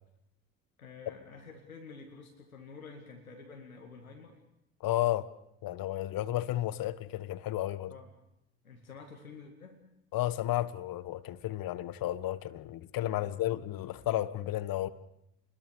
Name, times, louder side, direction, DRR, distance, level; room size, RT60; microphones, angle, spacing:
voice 1, 0.8-4.4 7.9-8.1 8.6-9.8 13.2-13.3, left 4 dB, 90° left, 2.2 m, -49 dB
voice 2, 4.8-5.3 5.6-7.9 10.1-14.9, left 14 dB, 55° left, 1.6 m, -32 dB
29.0 x 21.5 x 7.0 m
figure-of-eight pair, 50°, 41 cm